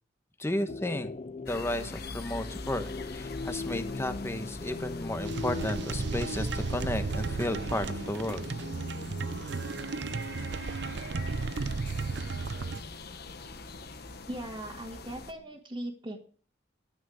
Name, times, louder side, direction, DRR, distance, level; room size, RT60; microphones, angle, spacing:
voice 1, 0.4-1.1 1.4-8.5, left 1 dB, 15° left, 8 dB, 1.3 m, -33 dB
sound 1, 0.7-14.4 14.7-14.8, left 3 dB, 35° left, 0.5 m, -41 dB
sound 2, 1.5-15.3, left 3 dB, 60° left, 1.3 m, -44 dB
sound 3, 5.2-12.8, right 4 dB, 65° right, 0.7 m, -34 dB
voice 2, 14.3-16.2, right 1 dB, 25° right, -3 dB, 2.0 m, -39 dB
12.5 x 9.1 x 6.5 m, 0.43 s
head